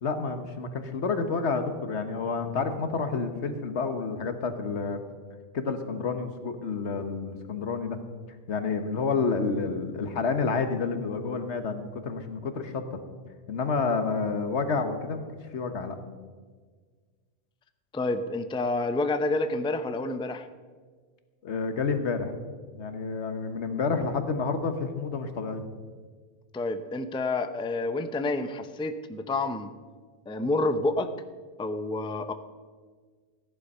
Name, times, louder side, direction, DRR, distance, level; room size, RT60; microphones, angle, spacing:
voice 1, 0.0-5.0 5.5-8.0 8.5-13.0 13.5-15.2 15.5-16.0 21.4-22.3 22.7-25.6, left 4 dB, 85° left, 8 dB, 1.4 m, -29 dB
voice 2, 17.9-20.5 26.5-29.7 30.3-31.1 31.6-32.3, left 2 dB, 5° left, 9 dB, 0.4 m, -28 dB
14.5 x 10.5 x 5.5 m, 1.5 s
omnidirectional pair, 1.1 m